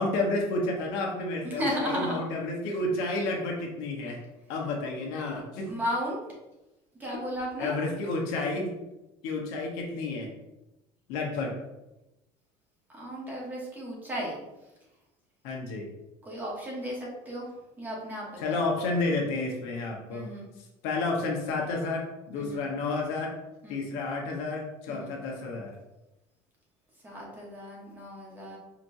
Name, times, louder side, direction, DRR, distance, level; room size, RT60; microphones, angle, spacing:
voice 1, 0.0-4.2 4.5-5.7 7.6-8.7 9.2-10.3 11.1-11.5 15.4-15.9 18.4-20.3 20.8-23.3 23.7-25.7, left 2 dB, 75° left, 0 dB, 1.1 m, -30 dB
voice 2, 1.4-2.3 5.3-5.4 5.6-6.2 7.0-7.7 12.9-14.4 16.2-17.5 17.8-18.6 20.1-20.5 22.3-22.6 23.6-23.8 24.9-25.1 27.0-28.6, equal, 15° right, -3 dB, 1.0 m, -34 dB
5.0 x 3.0 x 2.7 m, 0.96 s
cardioid pair, 165°, 12 cm